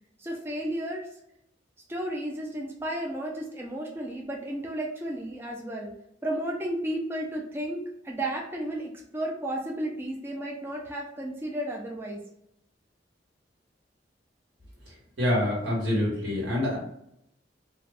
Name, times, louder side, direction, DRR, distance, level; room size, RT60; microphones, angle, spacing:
voice 1, 0.2-1.1 1.9-5.9 6.2-12.2, right 1 dB, 15° right, -1 dB, 0.4 m, -33 dB
voice 2, 15.2-16.8, left 1 dB, 85° right, -4 dB, 1.4 m, -26 dB
2.4 x 2.2 x 3.3 m, 0.76 s
head